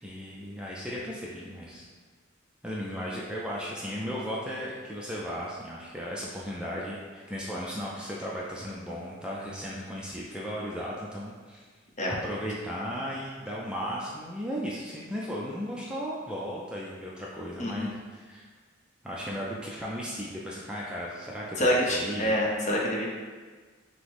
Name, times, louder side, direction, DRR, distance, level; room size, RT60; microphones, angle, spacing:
voice 1, 0.0-1.9 2.6-11.6 12.1-18.4 19.0-22.3, equal, 5° right, -5 dB, 0.4 m, -36 dB
voice 2, 21.6-23.1, equal, 35° left, -3 dB, 0.7 m, -26 dB
6.0 x 2.1 x 3.4 m, 1.5 s
head